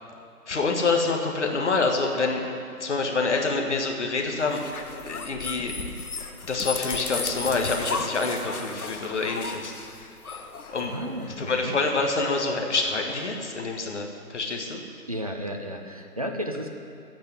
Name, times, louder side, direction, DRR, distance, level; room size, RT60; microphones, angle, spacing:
voice 1, 0.5-2.5 2.8-4.7 5.0-5.7 6.5-9.7 10.7-10.9 11.4-14.8, left 3 dB, 50° left, 2 dB, 1.7 m, -26 dB
sound 1, 4.4-11.3, left 4 dB, 70° left, 1.0 m, -35 dB
Run, 5.5-8.8 9.0-13.3, left 3 dB, 20° left, 3.3 m, -49 dB
voice 2, 10.8-11.7 15.1-16.7, equal, 25° right, 4 dB, 0.6 m, -33 dB
15.5 x 5.4 x 9.7 m, 2.5 s
figure-of-eight pair, 145°, 46 cm